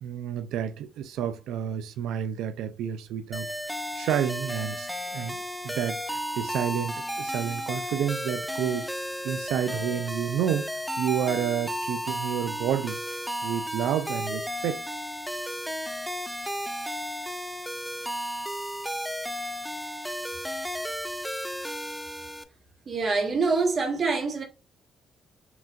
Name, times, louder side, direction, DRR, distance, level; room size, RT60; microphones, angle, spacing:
voice 1, 0.0-3.5 4.0-8.9 9.2-10.7 11.0-13.0 13.4-14.8, right 9 dB, 85° right, 0.4 m, -30 dB
sound 1, 3.3-22.4, equal, ahead, 0.4 m, -33 dB
voice 2, 22.8-24.4, right 4 dB, 45° right, 1.4 m, -25 dB
4.7 x 3.3 x 2.5 m
cardioid pair, 90°, 0 cm